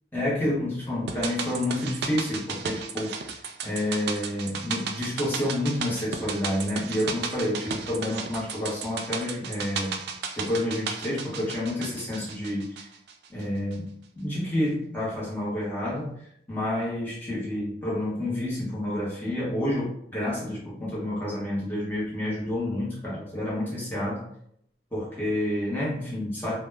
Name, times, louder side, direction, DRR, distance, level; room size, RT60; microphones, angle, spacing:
voice 1, 0.1-3.2 3.6-10.0 10.3-12.9 13.3-24.2 24.9-26.5, left 1 dB, 10° left, -8 dB, 0.9 m, -29 dB
sound 1, 1.1-13.4 13.7-13.8, right 5 dB, 65° right, 0.3 m, -35 dB
2.1 x 2.0 x 3.3 m, 0.70 s
head